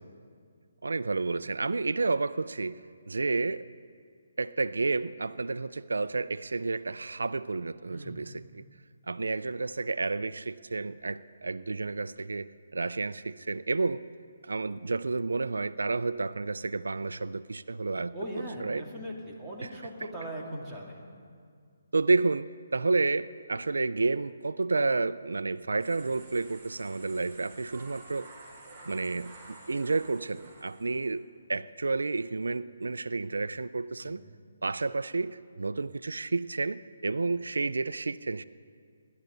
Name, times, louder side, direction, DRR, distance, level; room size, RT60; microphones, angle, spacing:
voice 1, 0.8-2.8 3.1-3.6 4.4-8.6 9.1-14.0 14.4-18.1 18.6-18.8 19.6-19.7 21.9-28.3 28.9-34.2 34.6-38.4, right 3 dB, 85° right, 16 dB, 0.4 m, -30 dB
voice 2, 7.9-8.3 18.1-21.0 34.0-34.4, equal, ahead, -7 dB, 2.7 m, -40 dB
sound 1, 25.8-31.1, right 2 dB, 15° right, 4.9 m, -51 dB
26.0 x 12.0 x 4.0 m, 2.1 s
hypercardioid pair, 155°, 0 cm